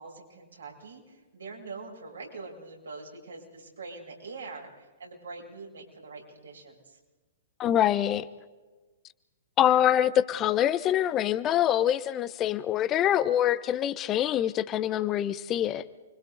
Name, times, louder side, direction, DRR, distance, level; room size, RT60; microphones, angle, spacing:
voice 1, 0.0-7.0, right 3 dB, 75° right, 7.7 m, -44 dB
voice 2, 7.6-8.3 9.6-15.8, left 11 dB, 25° left, 1.0 m, -25 dB
29.5 x 24.0 x 4.0 m
figure-of-eight pair, 115°, 0 cm